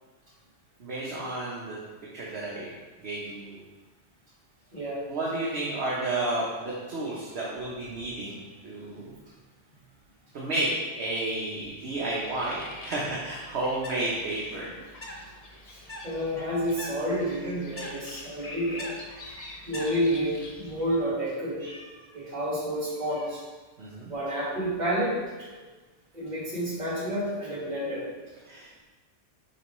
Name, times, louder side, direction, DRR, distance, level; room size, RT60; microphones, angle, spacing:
voice 1, 0.8-1.8 2.1-2.7 3.0-3.6 5.1-9.1 10.3-10.7 11.0-14.7 21.6-21.8 23.8-24.1 28.4-28.8, right 2 dB, 60° right, -5 dB, 1.2 m, -32 dB
voice 2, 4.7-5.0 15.7-18.9 19.7-21.6 22.1-23.4 24.1-25.5 26.1-28.1, equal, 35° right, -7 dB, 2.0 m, -30 dB
Bird, 12.2-21.0, left 1 dB, 35° left, 0.8 m, -43 dB
7.1 x 4.4 x 3.1 m, 1.3 s
omnidirectional pair, 1.3 m